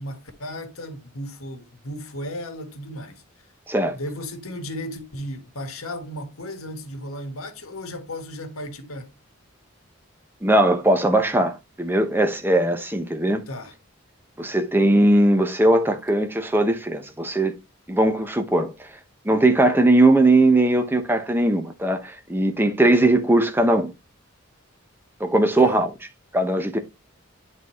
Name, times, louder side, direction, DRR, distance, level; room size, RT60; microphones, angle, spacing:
voice 1, 0.0-3.2 3.9-9.1 13.5-13.7 25.6-25.8, left 1 dB, 90° left, 1.6 m, -35 dB
voice 2, 10.4-13.4 14.4-17.5 17.9-18.7 19.2-23.9 25.2-25.9 26.3-26.8, right 1 dB, 10° right, 1.0 m, -19 dB
10.0 x 4.1 x 3.1 m
head